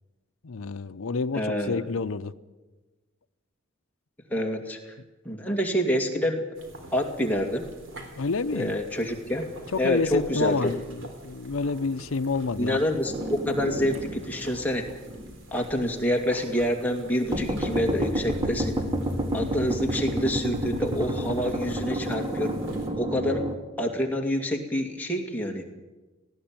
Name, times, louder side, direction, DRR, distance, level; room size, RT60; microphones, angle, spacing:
voice 1, 0.4-2.3 8.2-8.8 9.7-12.8, left 4 dB, 85° left, 0.7 m, -28 dB
voice 2, 1.3-1.8 4.3-5.0 5.2-6.4 6.9-7.6 8.5-9.5 9.8-10.8 12.6-14.8 15.5-18.7 19.3-22.5 23.0-23.4 23.8-25.6, equal, 10° left, 2.4 m, -27 dB
sound 1, 6.5-22.9, right 1 dB, 65° right, 3.8 m, -45 dB
sound 2, 13.1-15.3 15.7-15.8 17.3-23.5, right 1 dB, 20° right, 1.9 m, -30 dB
19.0 x 15.5 x 8.9 m
head